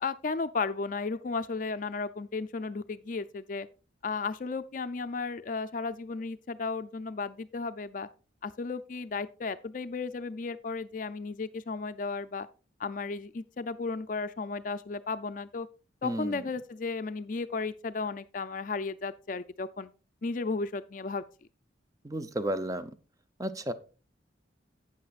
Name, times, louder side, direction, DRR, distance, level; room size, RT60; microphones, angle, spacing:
voice 1, 0.0-3.7 4.0-8.1 8.4-12.5 12.8-15.7 16.0-19.9 20.2-21.2, left 4 dB, 45° left, 0.4 m, -34 dB
voice 2, 16.0-16.5 22.0-22.9 23.4-23.7, right 1 dB, 20° right, 0.6 m, -33 dB
12.0 x 8.6 x 2.4 m
head